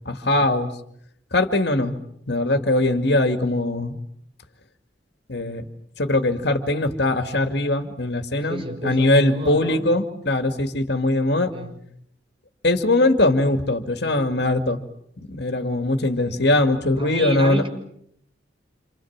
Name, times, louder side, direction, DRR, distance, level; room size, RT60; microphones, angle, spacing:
voice 1, 0.1-0.7 1.3-1.9 2.3-4.0 5.3-5.7 6.0-11.5 12.6-14.8 15.3-17.6, left 2 dB, 60° left, 7 dB, 2.2 m, -21 dB
voice 2, 8.5-9.9 11.5-11.7 16.3-16.4 17.0-17.7, right 1 dB, 30° right, 3 dB, 6.2 m, -30 dB
28.5 x 28.5 x 7.4 m, 0.73 s
head